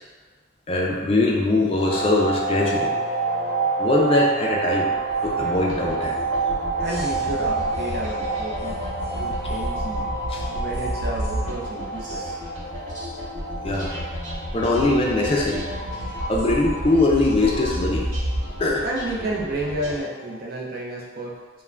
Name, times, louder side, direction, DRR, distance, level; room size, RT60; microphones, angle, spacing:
voice 1, 0.7-2.9 3.8-4.9 5.2-6.2 6.8-6.9 10.3-10.4 13.6-14.1 14.5-15.7 16.3-18.1 18.6-18.8, left 2 dB, 30° left, -2 dB, 0.3 m, -21 dB
sound 1, 1.8-20.3, right 3 dB, 50° left, 0.7 m, -29 dB
sound 2, 4.9-20.0, equal, 85° right, 1.0 m, -31 dB
voice 2, 6.8-8.8 9.2-10.0 10.5-12.4 18.8-21.3, right 1 dB, 50° right, -3 dB, 0.5 m, -31 dB
2.4 x 2.1 x 3.2 m, 1.4 s
head